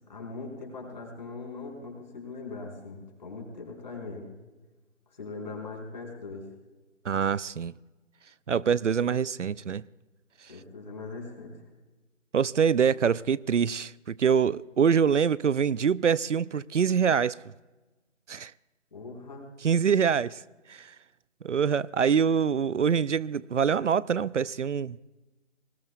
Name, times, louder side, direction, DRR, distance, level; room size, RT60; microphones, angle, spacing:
voice 1, 0.1-4.3 5.1-6.5 10.5-11.5 18.9-19.5, left 3 dB, 35° left, 4.6 m, -40 dB
voice 2, 7.0-7.7 8.5-9.8 12.3-17.4 18.3-18.5 19.6-20.4 20.7-20.9 21.4-25.0, right 7 dB, 70° right, 0.5 m, -25 dB
29.0 x 20.5 x 2.3 m
figure-of-eight pair, 165°, 38 cm